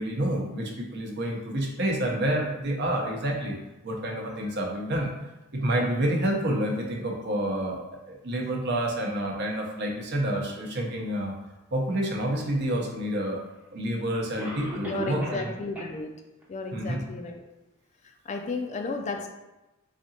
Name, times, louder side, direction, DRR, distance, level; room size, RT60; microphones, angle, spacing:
voice 1, 0.0-3.6 3.8-5.1 5.5-7.8 8.1-11.3 11.7-13.4 13.7-15.5 16.7-17.0, right 1 dB, 55° right, 0 dB, 0.7 m, -28 dB
Cough, 13.2-13.3 14.4-15.5 15.7-15.9 16.4-16.5 17.1-17.2, equal, 10° right, 0.6 m, -38 dB
voice 2, 14.7-16.1 16.5-17.4 18.3-19.3, left 3 dB, 35° left, 4 dB, 0.3 m, -33 dB
3.7 x 3.2 x 2.8 m, 1.0 s
head